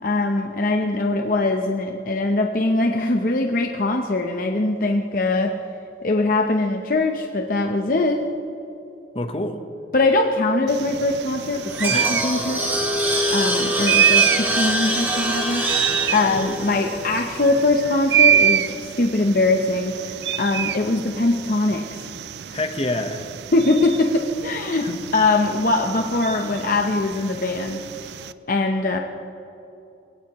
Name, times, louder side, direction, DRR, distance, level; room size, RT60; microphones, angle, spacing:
voice 1, 0.0-5.5 6.0-8.2 9.9-12.6 13.0-22.1 23.5-24.9 25.1-28.1 28.5-29.0, left 2 dB, 50° left, 2 dB, 0.8 m, -22 dB
voice 2, 9.1-9.6 11.9-12.2 22.5-23.2 24.8-25.0, left 2 dB, 35° left, 7 dB, 1.1 m, -27 dB
sound 1, 10.7-28.3, right 9 dB, 70° right, 0.4 m, -26 dB
sound 2, 11.4-17.7, equal, 10° right, 2.1 m, -25 dB
21.5 x 17.0 x 3.1 m, 2.8 s
head